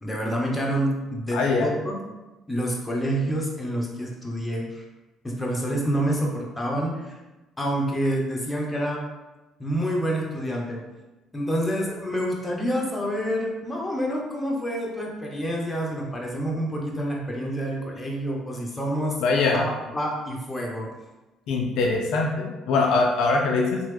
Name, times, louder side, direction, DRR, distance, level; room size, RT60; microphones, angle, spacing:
voice 1, 0.0-2.0 2.5-4.8 5.2-7.2 7.6-9.0 9.6-10.8 11.3-19.2 19.5-20.9, equal, 15° left, -2 dB, 0.8 m, -28 dB
voice 2, 1.3-1.7 19.2-19.7 21.5-23.8, left 3 dB, 70° left, 1 dB, 0.3 m, -22 dB
2.9 x 2.1 x 3.2 m, 1.1 s
hypercardioid pair, 55°, 0 cm